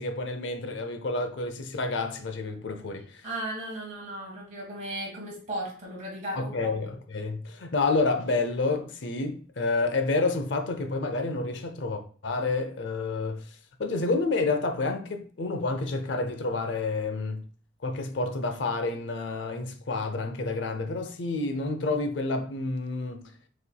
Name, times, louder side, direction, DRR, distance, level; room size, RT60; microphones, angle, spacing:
voice 1, 0.0-3.3 6.4-13.4 13.8-17.4 17.8-23.3, left 3 dB, 70° left, 0.6 m, -29 dB
voice 2, 3.2-6.9, right 1 dB, 40° right, 1.6 m, -36 dB
6.8 x 3.1 x 2.3 m
head